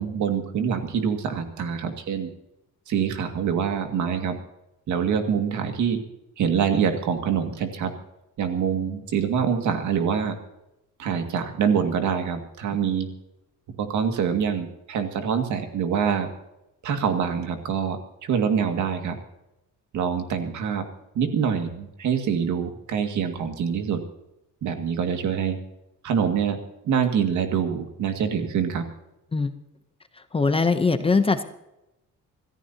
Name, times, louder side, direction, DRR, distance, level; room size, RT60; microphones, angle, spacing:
voice 1, 0.0-2.3 2.9-4.4 4.9-6.0 6.4-7.9 8.4-10.4 11.0-13.1 13.8-16.3 16.8-19.2 19.9-20.8 21.2-24.0 24.6-25.6 26.0-26.6 26.9-28.9, right 7 dB, 65° right, 6 dB, 2.1 m, -25 dB
voice 2, 30.3-31.4, left 4 dB, 15° left, 9 dB, 0.7 m, -21 dB
26.5 x 14.0 x 2.9 m, 0.91 s
cardioid pair, 165°, 32 cm